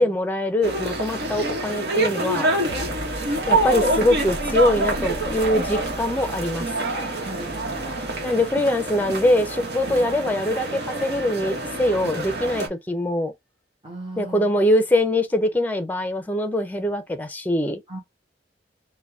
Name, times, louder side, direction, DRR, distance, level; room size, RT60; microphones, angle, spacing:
voice 1, 0.0-2.5 3.5-6.7 8.2-13.3 14.2-17.8, left 1 dB, 10° left, 0.6 m, -23 dB
sound 1, 0.6-12.7, right 2 dB, 65° right, 1.2 m, -26 dB
sound 2, 2.4-12.1, equal, 90° right, 1.2 m, -38 dB
voice 2, 7.2-8.0 13.8-14.5 17.9-18.0, right 1 dB, 30° right, 1.2 m, -37 dB
3.9 x 2.2 x 3.5 m
head